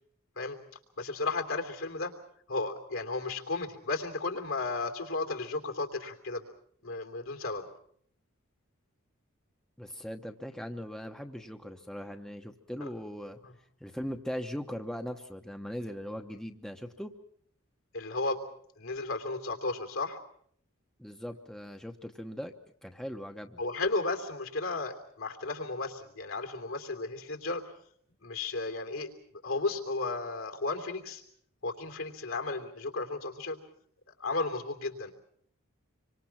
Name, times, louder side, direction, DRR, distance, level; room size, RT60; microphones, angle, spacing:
voice 1, 1.0-2.1 2.5-6.4 6.8-7.7 12.8-12.9 13.4-13.5 17.9-18.4 18.8-20.2 23.6-27.6 28.2-29.1 29.4-31.2 31.6-33.6 34.2-35.1, left 3 dB, 70° left, 5 dB, 3.1 m, -34 dB
voice 2, 9.8-13.4 13.8-17.1 21.0-22.5 22.8-23.6, equal, 5° left, 4 dB, 1.0 m, -39 dB
26.0 x 24.5 x 5.8 m, 0.64 s
head